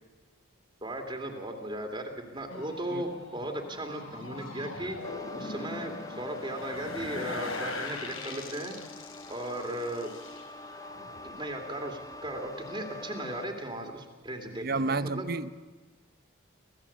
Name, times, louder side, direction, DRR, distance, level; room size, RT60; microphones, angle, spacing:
voice 1, 0.8-5.0 5.3-8.8 9.3-10.1 11.4-15.3, right 1 dB, 25° right, 4 dB, 2.5 m, -36 dB
sound 1, 2.5-11.6 11.9-12.4, left 3 dB, 85° left, 4.3 m, -41 dB
sound 2, 5.0-13.4, left 2 dB, 15° left, 0.7 m, -45 dB
voice 2, 14.5-15.5, right 3 dB, 45° right, 15 dB, 0.8 m, -30 dB
25.0 x 16.5 x 8.6 m, 1.3 s
head